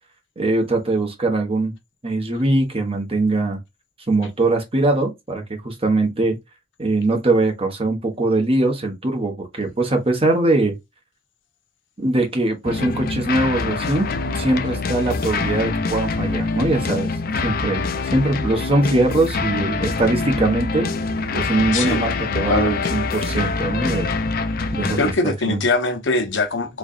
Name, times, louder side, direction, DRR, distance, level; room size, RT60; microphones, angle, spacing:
voice 1, 0.4-1.7 2.0-3.6 4.1-6.4 6.8-10.8 12.0-20.9 21.3-24.1 24.7-25.0 25.2-25.6, right 2 dB, 30° right, 1.1 m, -21 dB
sound 1, 12.6-25.1, left 4 dB, 55° left, 0.5 m, -25 dB
voice 2, 21.7-22.1 22.3-22.8 25.0-26.8, left 2 dB, 85° left, 1.0 m, -22 dB
3.9 x 3.2 x 2.3 m
head